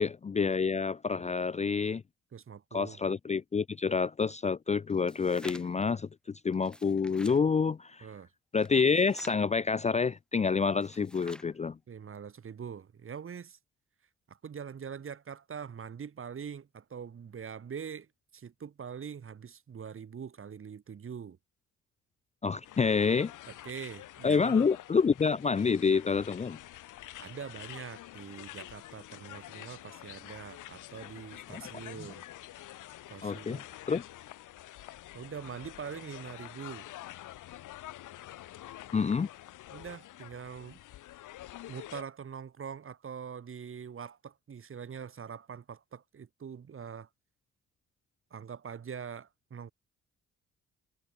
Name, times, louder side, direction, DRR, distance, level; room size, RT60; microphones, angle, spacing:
voice 1, 0.0-2.0 2.7-8.1 8.5-11.8 22.4-23.3 24.2-26.6 31.5-31.6 33.2-34.0 38.9-39.3, left 5 dB, 25° left, 0.5 m, -28 dB
voice 2, 2.3-3.0 8.0-8.3 11.9-13.6 14.3-18.1 18.3-21.4 23.5-24.7 27.2-32.2 33.1-33.6 35.1-36.9 39.7-40.8 41.7-47.1 48.3-49.7, right 7 dB, 45° right, 2.8 m, -43 dB
sound 1, 4.9-5.9 6.5-7.4 8.6-9.4 10.7-11.5, equal, 5° left, 1.6 m, -50 dB
sound 2, 22.6-42.0, left 14 dB, 85° left, 5.7 m, -47 dB
cardioid pair, 90°, 30 cm